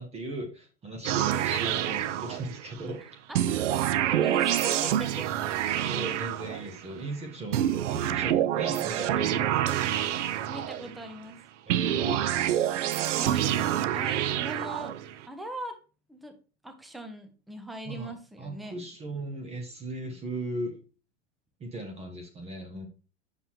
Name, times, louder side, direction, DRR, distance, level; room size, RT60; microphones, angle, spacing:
voice 1, 0.0-3.0 5.8-9.9 11.7-12.5 17.8-18.1 18.4-20.8 21.6-22.9, right 2 dB, 15° right, 4 dB, 0.9 m, -37 dB
sound 1, 1.0-2.8 3.3-6.9 7.5-11.1 11.7-15.2, right 11 dB, 85° right, 0.6 m, -27 dB
voice 2, 3.3-3.6 4.0-5.3 10.5-11.4 13.1-15.0 15.3-15.8 16.1-16.4 16.6-18.8, right 1 dB, ahead, 7 dB, 0.4 m, -41 dB
5.9 x 5.5 x 2.9 m, 0.35 s
supercardioid pair, 135°, 36 cm